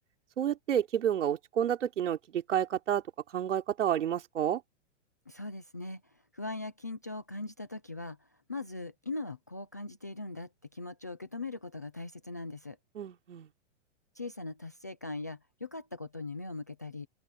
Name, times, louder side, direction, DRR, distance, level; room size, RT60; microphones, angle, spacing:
voice 1, 0.4-3.0 3.3-4.6 13.0-13.5, right 10 dB, 80° right, 3.6 m, -30 dB
voice 2, 5.3-12.8 14.2-17.1, left 2 dB, 15° left, 0.3 m, -40 dB
open air
hypercardioid pair, 175°, 36 cm